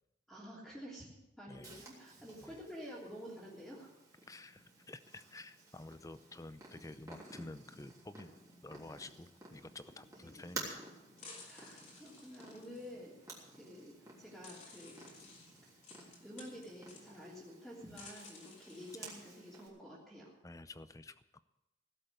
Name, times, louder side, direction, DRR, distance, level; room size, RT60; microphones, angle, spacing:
voice 1, 0.3-3.9 10.2-10.5 11.5-15.0 16.2-20.3, equal, ahead, -7 dB, 3.1 m, -50 dB
voice 2, 1.5-1.9 2.4-2.6 4.3-8.3 8.6-10.9 20.4-21.4, left 2 dB, 20° left, 13 dB, 0.6 m, -51 dB
Purr, 1.6-19.7, right 2 dB, 20° right, 3.3 m, -53 dB
sound 1, 10.5-10.6 11.2-13.0 13.8-13.9 14.4-17.2 17.9-19.4, left 3 dB, 40° left, 3.2 m, -55 dB
17.0 x 7.9 x 8.1 m, 0.92 s
head